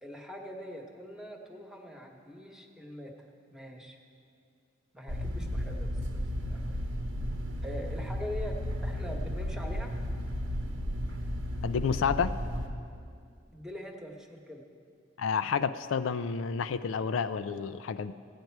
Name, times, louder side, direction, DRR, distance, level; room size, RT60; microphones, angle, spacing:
voice 1, 0.0-3.1 3.5-4.0 4.9-6.7 7.6-9.9 13.5-14.6, equal, 5° right, 1 dB, 1.1 m, -43 dB
sound 1, 5.1-12.7, equal, 85° right, 1.2 m, -34 dB
voice 2, 11.6-12.3 15.2-18.1, left 6 dB, 80° left, 11 dB, 0.4 m, -30 dB
16.0 x 9.4 x 4.6 m, 2.3 s
head